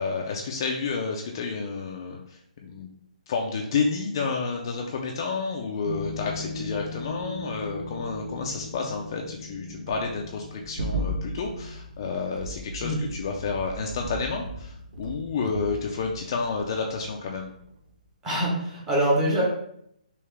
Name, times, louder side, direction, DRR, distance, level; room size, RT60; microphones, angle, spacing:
voice 1, 0.0-2.9 3.3-17.5, left 4 dB, 30° left, 0 dB, 0.3 m, -30 dB
sound 1, 5.8-17.4 17.6-17.9, equal, 75° right, 0.6 m, -36 dB
voice 2, 18.2-19.4, right 1 dB, 10° right, -4 dB, 0.7 m, -24 dB
3.5 x 2.8 x 3.2 m, 0.72 s
hypercardioid pair, 170°, 5 cm